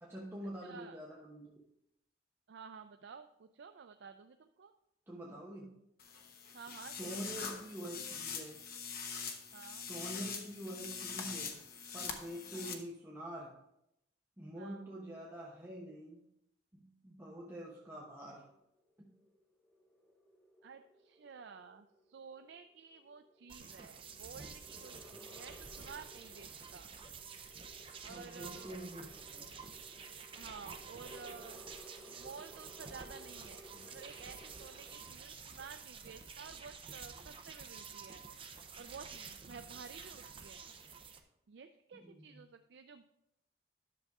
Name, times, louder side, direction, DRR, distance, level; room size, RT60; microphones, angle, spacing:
voice 1, 0.0-1.5 5.1-5.7 7.0-8.6 9.7-11.6 11.9-13.5 14.4-16.2 16.7-18.4 28.1-29.5 41.9-42.4, right 1 dB, 15° right, -5 dB, 1.1 m, -46 dB
voice 2, 0.6-1.0 2.5-4.7 6.5-7.2 9.5-9.9 12.5-12.8 14.6-14.8 20.6-26.9 28.0-28.8 30.4-31.6 32.0-38.2 38.8-40.6 41.5-43.0, right 5 dB, 70° right, 8 dB, 0.4 m, -52 dB
sound 1, 6.0-12.7, left 6 dB, 55° left, 1.0 m, -43 dB
sound 2, 17.7-35.0, equal, 10° left, 0.9 m, -59 dB
sound 3, 23.5-41.2, right 5 dB, 30° right, 0.7 m, -50 dB
10.5 x 6.5 x 3.6 m, 0.82 s
head